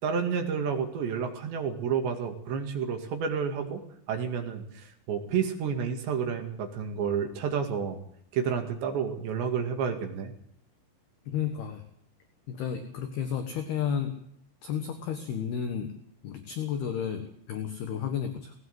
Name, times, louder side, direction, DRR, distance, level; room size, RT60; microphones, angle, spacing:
voice 1, 0.0-3.8 4.1-8.0 8.3-10.3, right 6 dB, 65° right, 5 dB, 4.3 m, -30 dB
voice 2, 11.3-11.8 12.5-14.2 14.6-16.0 16.2-18.5, left 8 dB, 60° left, 6 dB, 3.1 m, -32 dB
19.0 x 18.0 x 8.0 m, 0.66 s
omnidirectional pair, 5.8 m